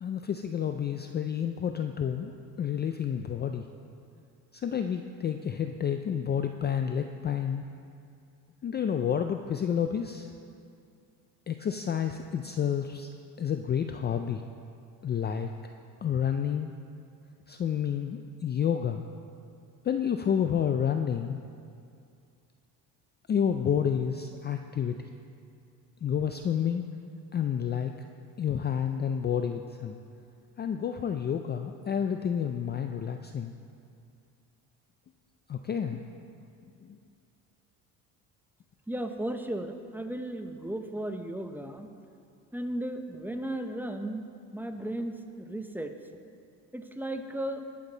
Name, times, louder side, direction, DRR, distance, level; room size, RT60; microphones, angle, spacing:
voice 1, 0.0-2.3 2.6-3.7 4.5-7.6 8.6-10.3 11.5-13.1 13.4-14.4 15.0-15.5 16.0-16.7 17.5-19.0 19.8-21.4 23.3-25.1 26.0-26.9 27.3-27.9 28.4-30.0 30.6-33.5 35.5-36.0 36.8-37.0, left 8 dB, 30° left, 6 dB, 0.4 m, -29 dB
voice 2, 38.9-41.9 42.5-44.3 44.5-45.9 46.7-47.7, right 1 dB, 5° right, 5 dB, 0.7 m, -35 dB
19.0 x 7.4 x 3.9 m, 2.4 s
cardioid pair, 110°, 38 cm